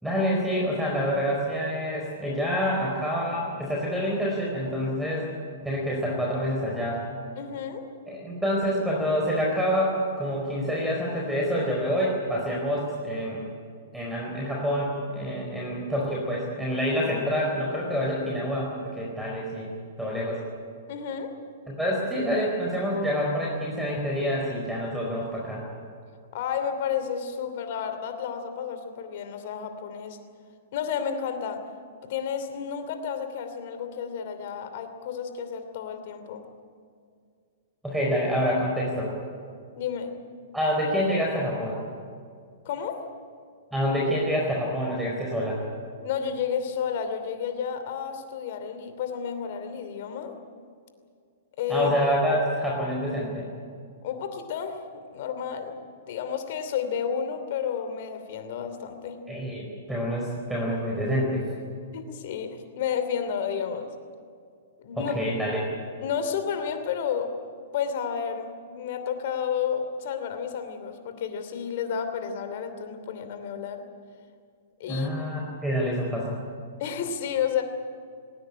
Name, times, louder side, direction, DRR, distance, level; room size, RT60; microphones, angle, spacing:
voice 1, 0.0-5.3 5.6-7.0 8.1-13.4 13.9-19.7 20.0-20.4 21.7-25.6 37.8-39.1 40.5-41.8 43.7-45.6 51.7-53.4 59.3-61.4 64.9-65.6 74.9-76.4, equal, 5° right, -3 dB, 4.6 m, -27 dB
voice 2, 7.4-7.8 20.9-21.3 26.3-30.2 30.7-31.6 32.0-36.4 39.8-40.2 42.6-43.1 46.0-50.3 51.6-51.9 54.0-54.8 55.1-55.8 56.1-59.2 61.9-63.9 64.8-65.1 66.0-67.3 67.7-73.8 74.8-75.3 76.8-77.6, left 7 dB, 50° left, 8 dB, 2.8 m, -31 dB
19.0 x 19.0 x 9.8 m, 2.2 s
figure-of-eight pair, 110°, 0 cm